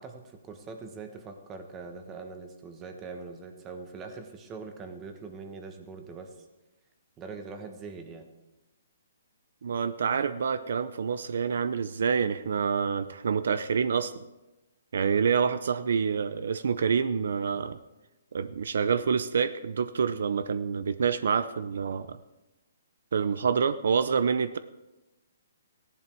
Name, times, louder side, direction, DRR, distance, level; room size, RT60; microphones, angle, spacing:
voice 1, 0.0-6.3 7.2-8.3, right 4 dB, 15° right, 6 dB, 1.3 m, -42 dB
voice 2, 9.6-14.2 14.9-17.8 18.3-22.2 23.1-24.6, right 6 dB, 70° right, 14 dB, 0.6 m, -27 dB
15.5 x 11.0 x 4.6 m, 1.1 s
hypercardioid pair, 160°, 0 cm